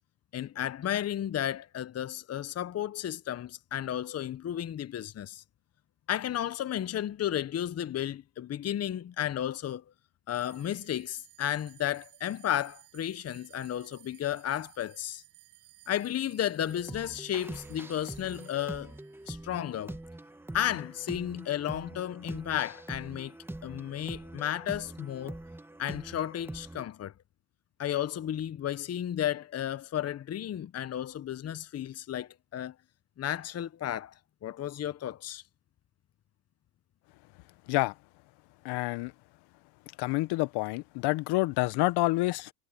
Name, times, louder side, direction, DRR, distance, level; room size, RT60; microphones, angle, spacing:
voice 1, 0.3-5.4 6.1-9.8 10.3-15.2 15.9-18.9 19.3-20.0 20.5-23.3 23.6-25.4 25.8-27.1 27.8-32.7 33.2-34.1 34.4-35.4, left 11 dB, 35° left, 1.2 m, -33 dB
sound 1, 10.3-20.9, right 31 dB, 65° right, 6.9 m, -58 dB
sound 2, 16.6-26.9, right 1 dB, 5° right, 1.5 m, -44 dB
voice 2, 38.6-39.1 40.0-42.5, left 20 dB, 60° left, 1.4 m, -28 dB
hypercardioid pair, 85°, 45 cm